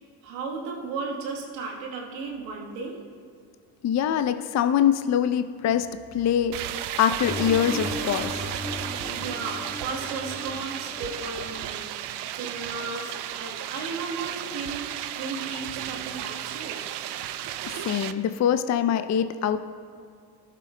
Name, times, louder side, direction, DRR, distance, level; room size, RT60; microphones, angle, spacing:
voice 1, 0.2-3.1 9.1-16.9, right 4 dB, 85° right, 0 dB, 1.4 m, -35 dB
voice 2, 3.8-5.9 6.1-6.6 7.0-8.4 17.7-19.6, left 9 dB, 35° left, 10 dB, 0.5 m, -23 dB
sound 1, 6.5-18.1, right 12 dB, 60° right, 0.6 m, -34 dB
sound 2, 7.2-11.6, left 1 dB, ahead, 1.9 m, -37 dB
16.5 x 7.5 x 2.2 m, 2.3 s
hypercardioid pair, 50°, 48 cm